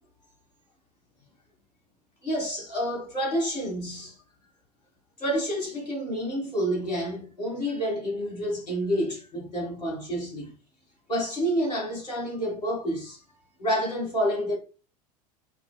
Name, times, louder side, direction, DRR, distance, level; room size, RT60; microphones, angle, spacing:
voice 1, 2.2-4.1 5.2-10.5 11.1-13.2 13.6-14.5, equal, 90° left, 1.5 m, -29 dB
4.6 x 2.2 x 2.2 m
figure-of-eight pair, 80°, 20 cm